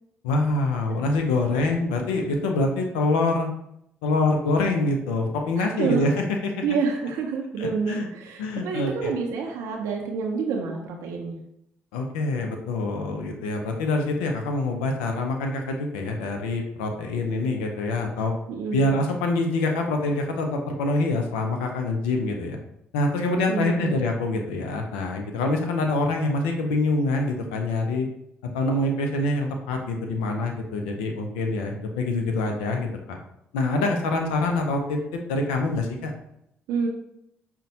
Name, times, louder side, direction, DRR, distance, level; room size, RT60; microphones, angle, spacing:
voice 1, 0.2-3.5 4.0-6.6 7.6-8.1 8.4-9.1 11.9-18.3 18.7-22.6 22.9-28.1 28.5-33.2 33.5-36.1, left 2 dB, 90° left, 3 dB, 0.4 m, -25 dB
voice 2, 5.8-6.1 6.6-11.4 18.5-18.9 23.5-24.0 36.7-36.9, right 5 dB, 75° right, 1 dB, 0.4 m, -28 dB
5.3 x 2.1 x 2.7 m, 0.76 s
hypercardioid pair, 50°, 5 cm